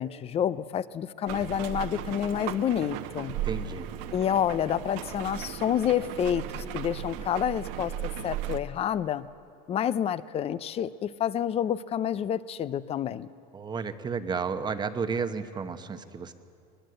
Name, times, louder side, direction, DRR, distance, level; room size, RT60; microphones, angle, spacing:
voice 1, 0.0-3.3 4.1-9.3 9.7-13.3, left 9 dB, 30° left, 17 dB, 0.6 m, -29 dB
sound 1, 1.3-8.6, right 11 dB, 60° right, 1.2 m, -36 dB
voice 2, 3.4-3.9 13.5-16.3, right 5 dB, 20° right, 10 dB, 1.0 m, -32 dB
21.5 x 21.5 x 7.8 m, 2.6 s
supercardioid pair, 140°, 21 cm